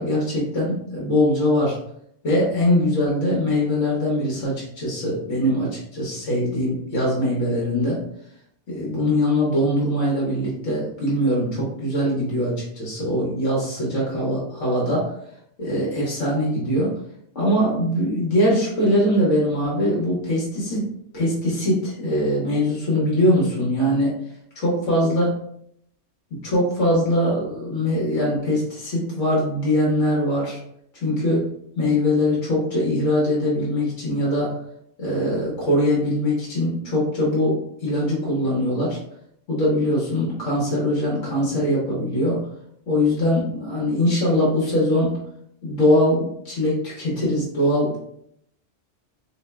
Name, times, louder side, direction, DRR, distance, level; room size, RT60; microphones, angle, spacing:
voice 1, 0.0-1.8 2.2-8.0 8.7-15.1 15.6-16.9 17.3-24.2 24.5-25.3 26.3-30.6 30.9-31.5 31.7-34.6 35.0-39.0 39.5-42.4 42.9-45.2 45.6-48.0, left 1 dB, 75° left, -4 dB, 1.5 m, -22 dB
4.2 x 3.0 x 2.2 m, 0.70 s
omnidirectional pair, 1.2 m